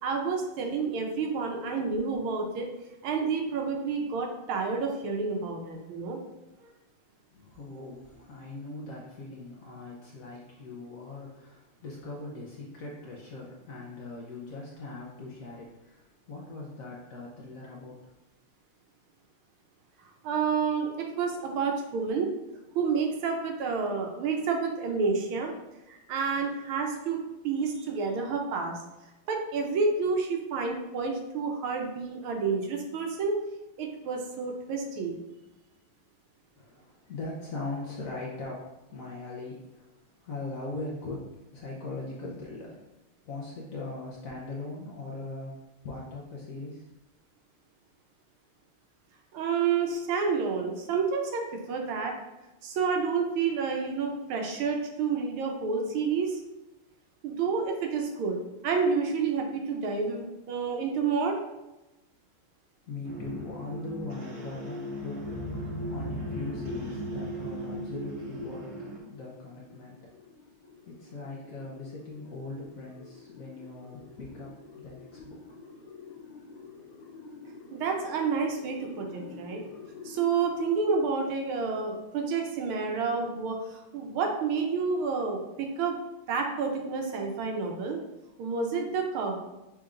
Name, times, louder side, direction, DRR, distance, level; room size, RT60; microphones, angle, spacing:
voice 1, 0.0-2.7 3.0-6.2 20.2-22.3 22.7-25.5 25.9-27.2 27.4-28.7 29.3-33.4 33.8-35.2 49.3-52.1 52.6-56.4 57.2-58.4 58.6-61.4 77.7-79.6 80.0-86.0 86.3-88.0 88.4-89.4, right 5 dB, 80° right, 2 dB, 1.5 m, -29 dB
voice 2, 7.3-18.0 36.5-41.3 41.5-42.8 43.2-45.6 45.8-46.9 62.9-68.7 69.1-70.0 70.8-75.4, left 2 dB, 70° left, -4 dB, 0.7 m, -40 dB
sound 1, 63.0-69.0, equal, 60° right, 1.1 m, -37 dB
sound 2, 68.0-80.5, left 4 dB, 85° left, 1.6 m, -49 dB
5.8 x 3.4 x 2.5 m, 0.99 s
omnidirectional pair, 2.4 m